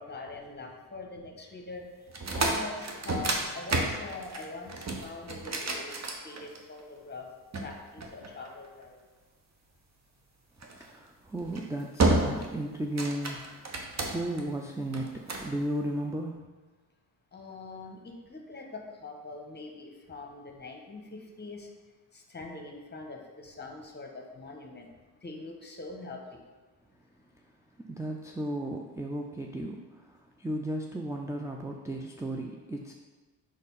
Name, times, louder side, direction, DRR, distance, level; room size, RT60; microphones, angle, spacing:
voice 1, 0.0-1.8 2.3-6.0 6.2-7.3 7.6-9.0 17.3-21.7 22.1-24.9 25.2-26.4, left 3 dB, 25° left, 2 dB, 1.3 m, -43 dB
sound 1, 2.1-6.8 7.5-8.8 10.6-10.9 11.4-11.6 12.0-12.5 12.8-14.4 14.9-15.5, right 2 dB, 40° right, 1.1 m, -30 dB
voice 2, 10.8-16.4 27.9-30.0 30.4-32.9, right 1 dB, 5° right, 1 dB, 0.5 m, -35 dB
5.0 x 4.1 x 5.5 m, 1.3 s
supercardioid pair, 60°, 43 cm